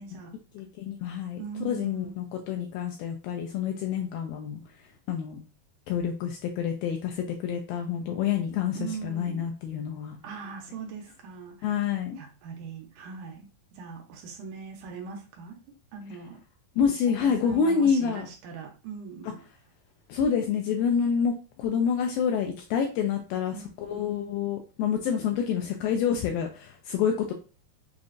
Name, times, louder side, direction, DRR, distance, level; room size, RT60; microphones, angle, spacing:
voice 1, 0.0-0.4 1.4-2.3 8.7-9.5 10.2-15.6 15.9-16.4 17.2-19.4 23.5-24.1, right 5 dB, 75° right, 1 dB, 1.9 m, -41 dB
voice 2, 0.6-1.4 1.7-4.6 5.1-5.4 5.9-10.2 11.6-12.2 16.8-18.3 20.1-27.3, left 7 dB, 80° left, 3 dB, 2.1 m, -27 dB
6.6 x 2.4 x 2.5 m, 0.34 s
omnidirectional pair, 4.5 m